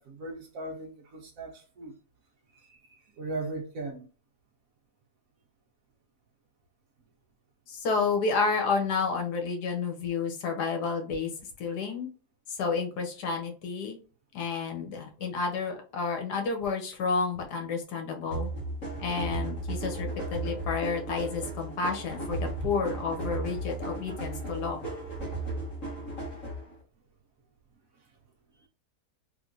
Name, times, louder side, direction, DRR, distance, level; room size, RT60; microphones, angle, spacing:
voice 1, 0.0-2.0 2.5-4.1 27.9-28.1, right 2 dB, 60° right, 1.1 m, -39 dB
voice 2, 7.7-11.3 11.6-12.1 12.5-14.0 14.3-18.5 19.0-24.8, left 4 dB, 75° left, 1.5 m, -30 dB
sound 1, 18.3-26.7, right 2 dB, 50° left, 1.7 m, -35 dB
3.5 x 3.0 x 2.5 m
omnidirectional pair, 1.7 m